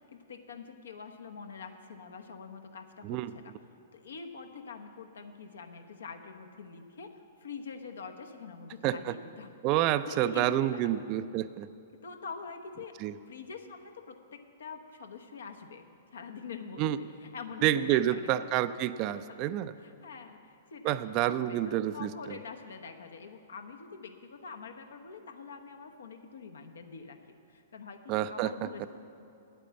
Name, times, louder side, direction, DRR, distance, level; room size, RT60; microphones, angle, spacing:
voice 1, 0.1-3.5 3.9-9.5 10.1-10.9 12.0-13.0 13.3-15.8 16.1-16.9 17.2-18.5 19.1-19.2 19.8-21.0 21.3-28.9, left 5 dB, 75° left, 6 dB, 0.9 m, -45 dB
voice 2, 8.8-9.1 9.6-11.7 13.0-13.1 16.8-17.0 17.6-19.7 20.8-22.4 28.1-28.5, right 12 dB, 40° right, 13 dB, 0.4 m, -28 dB
9.0 x 9.0 x 6.9 m, 2.6 s
hypercardioid pair, 115°, 0 cm